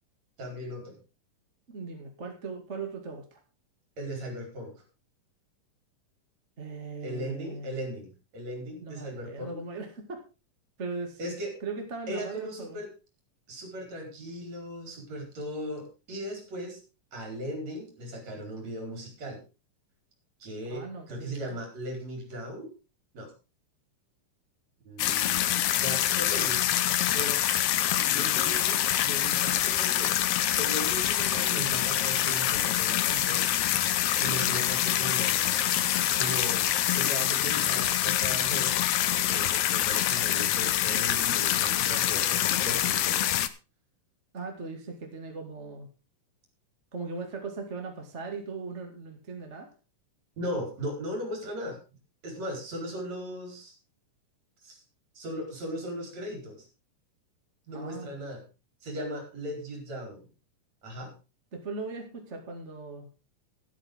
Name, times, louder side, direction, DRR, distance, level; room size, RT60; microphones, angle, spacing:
voice 1, 0.4-1.0 4.0-4.7 7.0-9.6 11.2-11.5 12.1-12.9 13.5-16.8 17.1-19.4 20.4-22.7 23.1-23.3 24.9-26.7 27.1-27.4 28.2-30.1 30.6-33.5 34.1-35.8 36.1-38.8 39.1-43.2 50.4-51.8 52.2-53.7 54.6-54.8 55.2-56.7 57.7-58.4 58.8-60.2 60.8-61.1, equal, 55° right, 3 dB, 5.7 m, -37 dB
voice 2, 1.7-3.4 6.6-7.8 8.8-10.2 10.8-11.2 11.6-12.8 20.6-21.6 44.3-45.9 46.9-49.7 57.7-58.1 61.5-63.1, right 4 dB, 25° right, 3 dB, 2.2 m, -39 dB
sound 1, 25.0-43.5, left 12 dB, 75° left, 1.4 m, -26 dB
13.0 x 13.0 x 3.7 m, 0.30 s
omnidirectional pair, 3.8 m